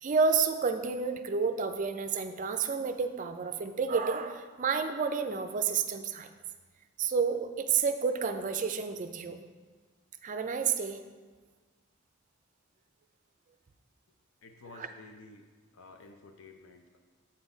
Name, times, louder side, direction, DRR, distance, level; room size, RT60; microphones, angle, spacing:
voice 1, 0.0-6.3 7.0-9.4 10.2-11.0 14.8-14.9, right 5 dB, 40° right, 9 dB, 0.4 m, -30 dB
voice 2, 14.4-15.5 15.7-17.0, left 3 dB, 70° left, 5 dB, 0.5 m, -52 dB
7.7 x 4.1 x 4.9 m, 1.4 s
head